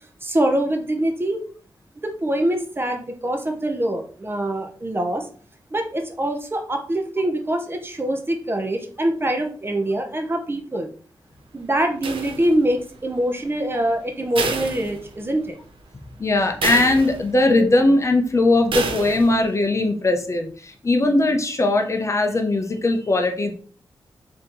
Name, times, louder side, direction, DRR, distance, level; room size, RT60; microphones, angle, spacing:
voice 1, 0.2-1.4 2.0-5.3 5.7-10.9 11.5-15.6, right 1 dB, 25° right, 4 dB, 0.7 m, -24 dB
sound 1, 12.0-12.9 14.4-15.5 15.9-16.0 16.6-17.5 18.7-19.5, right 4 dB, 80° right, 0.6 m, -29 dB
voice 2, 16.2-23.5, left 2 dB, 35° left, 4 dB, 0.6 m, -19 dB
4.2 x 2.8 x 3.8 m, 0.43 s
wide cardioid pair, 120°, 9 cm